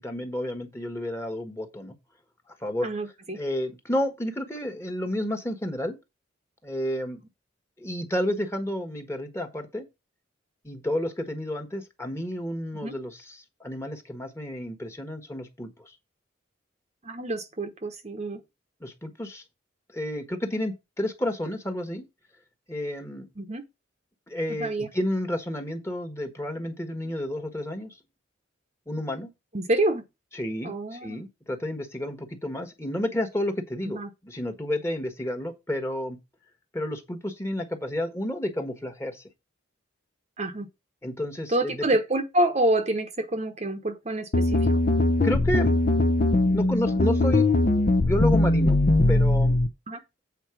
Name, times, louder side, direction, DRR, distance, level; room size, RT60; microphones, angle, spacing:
voice 1, 0.0-1.9 2.6-2.9 3.3-6.0 6.6-7.2 7.8-9.9 10.6-13.2 13.6-15.9 18.8-19.4 19.9-22.1 22.7-23.3 24.3-27.9 28.9-29.3 30.3-36.2 36.7-39.2 41.0-41.9 45.2-45.8 46.5-47.5 47.8-48.8 49.1-49.6, left 1 dB, 15° left, 1.4 m, -31 dB
voice 2, 2.8-3.4 12.8-12.9 17.0-18.4 23.4-23.6 24.6-24.9 29.5-30.1 30.6-31.2 33.8-34.1 40.4-40.7 41.5-44.6 49.9-50.0, right 1 dB, 35° right, 1.0 m, -27 dB
sound 1, 44.3-49.7, left 2 dB, 45° left, 0.7 m, -21 dB
8.2 x 4.3 x 5.9 m
head